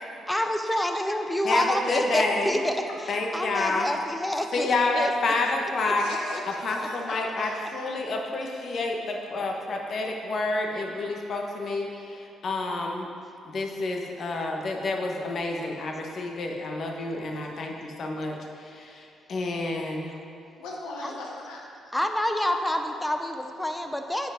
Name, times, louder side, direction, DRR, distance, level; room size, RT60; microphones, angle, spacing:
voice 1, 0.3-2.8 3.3-4.7 4.9-5.1 7.0-7.1 17.7-17.9 21.0-21.1 21.9-24.3, left 1 dB, 10° left, 5 dB, 0.6 m, -27 dB
voice 2, 1.4-2.6 3.1-3.9 4.5-6.0 6.6-13.1 13.5-19.0 19.3-20.1, left 2 dB, 55° left, 1 dB, 1.0 m, -29 dB
voice 3, 5.9-8.0 17.2-17.7 20.6-21.6, left 2 dB, 90° left, -1 dB, 1.3 m, -39 dB
7.9 x 5.2 x 5.0 m, 2.6 s
cardioid pair, 90°, 0 cm